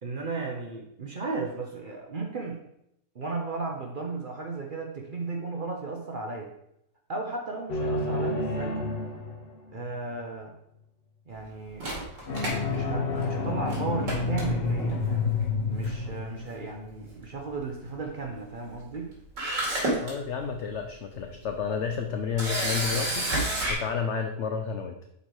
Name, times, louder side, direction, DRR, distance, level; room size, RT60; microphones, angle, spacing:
voice 1, 0.0-2.6 3.1-6.5 7.1-8.8 9.7-10.5 11.3-11.9 12.7-15.3 15.7-19.1, right 3 dB, 55° right, 1 dB, 0.5 m, -35 dB
sound 1, 7.7-9.9 12.3-17.3, left 3 dB, 50° left, 0.7 m, -29 dB
Camera, 11.8-13.4 13.7-13.8 14.1-14.9 15.8-16.1 16.4-16.5 18.9-19.0 19.4-20.1 20.7-20.8 22.4-23.7, right 1 dB, 80° right, 2.8 m, -29 dB
voice 2, 20.0-23.3 23.7-25.0, left 6 dB, 85° left, 5 dB, 0.6 m, -31 dB
5.4 x 4.4 x 4.7 m, 0.78 s
omnidirectional pair, 1.8 m